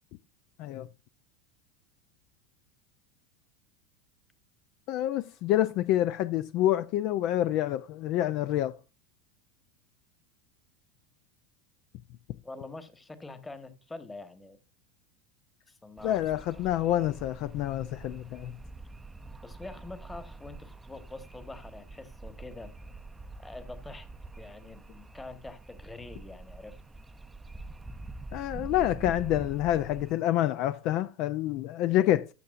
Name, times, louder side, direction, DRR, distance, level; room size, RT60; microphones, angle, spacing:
voice 1, 4.9-8.8 16.0-18.5 28.3-32.3, left 13 dB, 55° left, 0.4 m, -27 dB
voice 2, 12.4-14.6 15.7-16.2 19.4-22.7 23.4-24.1 24.4-26.8, left 2 dB, 15° left, 1.3 m, -45 dB
sound 1, 16.0-30.1, right 2 dB, 10° right, 0.5 m, -45 dB
12.5 x 6.7 x 2.5 m
hypercardioid pair, 100°, 0 cm